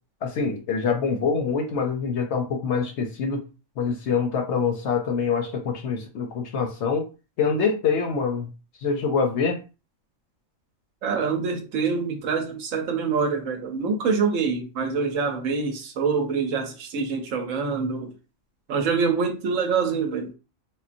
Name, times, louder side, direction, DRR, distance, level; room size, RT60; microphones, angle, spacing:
voice 1, 0.2-3.4 3.8-7.1 7.4-8.5 8.8-9.6, left 5 dB, 65° left, 0.8 m, -25 dB
voice 2, 11.0-18.1 18.7-20.3, right 5 dB, 75° right, 1.0 m, -25 dB
3.7 x 2.2 x 2.5 m
omnidirectional pair, 1.4 m